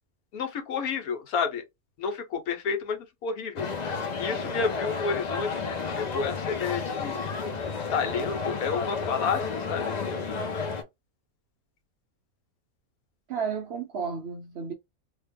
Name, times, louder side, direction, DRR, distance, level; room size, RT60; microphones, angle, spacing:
voice 1, 0.3-1.6 2.0-3.7 4.2-7.2 7.9-10.0, left 5 dB, 85° left, 1.3 m, -30 dB
sound 1, 3.6-10.8, left 4 dB, 65° left, 0.4 m, -32 dB
voice 2, 13.3-14.7, right 6 dB, 65° right, 0.7 m, -32 dB
2.8 x 2.1 x 3.4 m
omnidirectional pair, 1.5 m